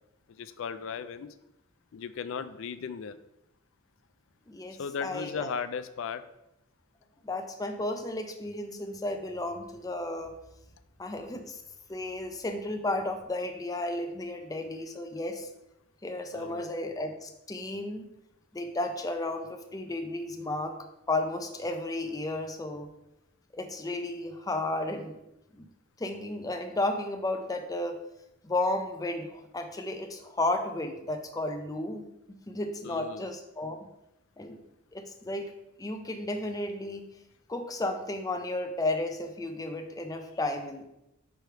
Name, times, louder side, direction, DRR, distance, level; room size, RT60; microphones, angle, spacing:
voice 1, 0.3-1.3 1.9-3.2 4.8-6.2 16.3-16.7 32.8-33.3, left 6 dB, 65° left, 12 dB, 0.4 m, -36 dB
voice 2, 4.5-5.5 7.2-10.3 11.0-11.6 11.9-15.5 16.0-18.0 18.5-20.8 21.1-22.9 23.5-25.2 25.5-25.7 26.0-28.0 28.4-32.0 32.3-33.8 34.4-34.6 34.9-35.5 35.8-37.1 37.5-40.8, left 2 dB, 15° left, 5 dB, 0.5 m, -33 dB
6.2 x 3.4 x 4.5 m, 0.86 s
head